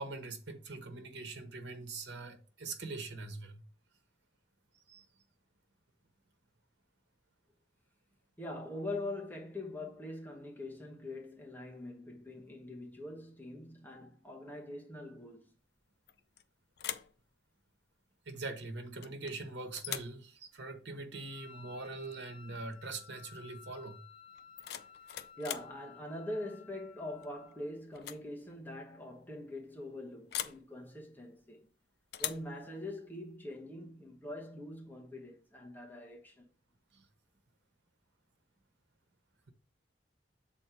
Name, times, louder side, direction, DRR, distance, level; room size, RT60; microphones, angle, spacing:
voice 1, 0.0-3.6 4.7-5.0 18.3-24.0 36.9-37.1, right 3 dB, 85° right, 1.2 m, -43 dB
voice 2, 8.4-15.5 25.4-31.7 32.2-36.5, left 1 dB, 10° left, 1.2 m, -43 dB
sound 1, 16.1-16.4 16.8-17.2 19.0-19.4 19.8-20.2 22.0-22.2 22.5-22.9 24.3-25.8 27.2-27.5 27.9-28.3 28.5-28.6 30.3-30.7 32.1-32.5, left 11 dB, 60° left, 0.4 m, -41 dB
Wind instrument woodwind instrument, 21.1-27.7, left 8 dB, 30° left, 1.4 m, -56 dB
7.1 x 4.3 x 4.4 m
head